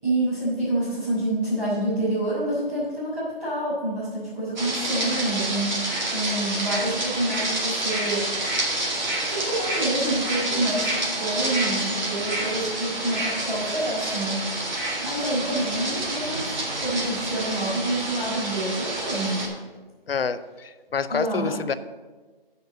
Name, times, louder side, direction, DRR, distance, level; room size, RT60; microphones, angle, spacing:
voice 1, 0.0-5.8 6.1-8.3 9.3-14.4 15.0-16.5 16.8-19.5 21.1-21.6, right 1 dB, 15° right, -13 dB, 3.4 m, -27 dB
sound 1, 4.6-19.5, right 2 dB, 50° right, 2.1 m, -28 dB
voice 2, 20.1-21.7, left 6 dB, 75° left, 14 dB, 0.6 m, -28 dB
8.0 x 5.4 x 7.4 m, 1.3 s
hypercardioid pair, 170°, 30 cm